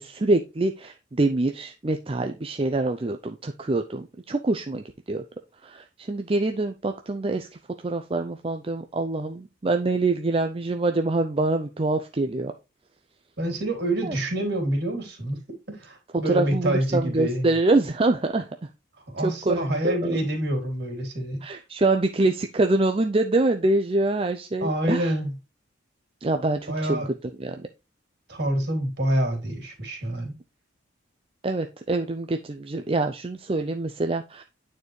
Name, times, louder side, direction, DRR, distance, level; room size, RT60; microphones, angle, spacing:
voice 1, 0.0-5.2 5.6-7.5 7.8-12.5 14.0-14.2 16.3-18.5 19.2-20.2 21.4-25.1 26.2-27.0 27.4-27.7 31.4-34.4, right 2 dB, 25° right, 0.5 m, -25 dB
voice 2, 13.4-17.5 19.1-21.4 24.6-25.3 26.7-27.1 28.3-30.3, right 1 dB, 55° right, 2.9 m, -27 dB
9.4 x 4.3 x 3.1 m
head